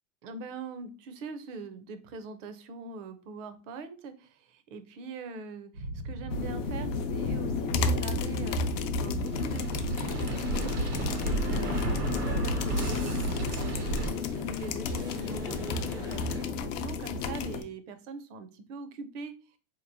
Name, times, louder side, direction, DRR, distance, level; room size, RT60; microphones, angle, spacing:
voice 1, 0.2-10.8 11.2-19.6, right 4 dB, 55° right, 11 dB, 0.6 m, -43 dB
sound 1, 5.7-14.1, right 2 dB, 90° right, 1.4 m, -33 dB
sound 2, 6.3-17.6, left 5 dB, 55° left, 0.5 m, -32 dB
sound 3, 10.2-16.4, right 1 dB, 10° right, 0.4 m, -43 dB
4.0 x 2.9 x 2.5 m, 0.36 s
supercardioid pair, 155°, 44 cm